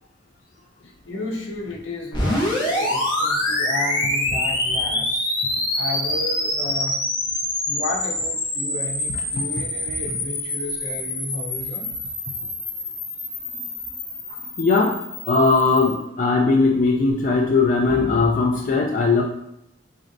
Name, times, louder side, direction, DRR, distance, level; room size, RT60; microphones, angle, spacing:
voice 1, 1.0-5.3 5.8-6.9 7.7-11.8, left 2 dB, 80° left, -1 dB, 0.8 m, -32 dB
sound 1, 2.1-16.0, left 1 dB, 25° left, 0.9 m, -26 dB
voice 2, 14.3-15.0 15.3-19.2, left 3 dB, 40° left, -1 dB, 0.4 m, -19 dB
3.8 x 3.2 x 2.6 m, 0.78 s
head